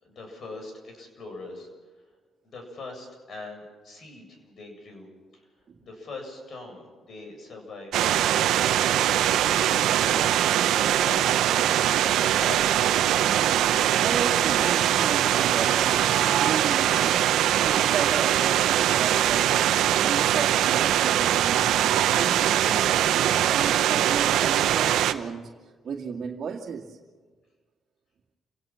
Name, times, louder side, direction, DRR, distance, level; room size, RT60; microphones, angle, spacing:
voice 1, 0.0-1.7 2.4-5.1 5.3-5.5 5.8-8.7 9.2-11.2 11.5-13.0, left 3 dB, 55° left, 7.8 m, -42 dB
sound 1, 7.9-25.1, right 11 dB, 85° right, 0.9 m, -22 dB
voice 2, 14.0-17.2 17.5-21.7 22.1-25.5 25.8-27.0, right 6 dB, 55° right, 2.2 m, -34 dB
29.0 x 18.0 x 5.9 m
cardioid pair, 90°, 0 cm